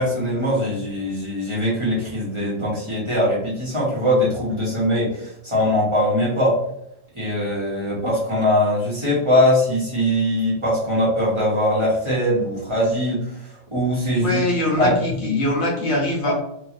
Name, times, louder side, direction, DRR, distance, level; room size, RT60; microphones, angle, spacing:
voice 1, 0.0-6.6 7.1-14.4 14.7-15.2 16.2-16.3, equal, 25° right, -8 dB, 1.0 m, -21 dB
voice 2, 14.2-16.3, left 1 dB, 70° left, -2 dB, 1.1 m, -22 dB
3.0 x 2.4 x 2.5 m, 0.76 s
omnidirectional pair, 1.2 m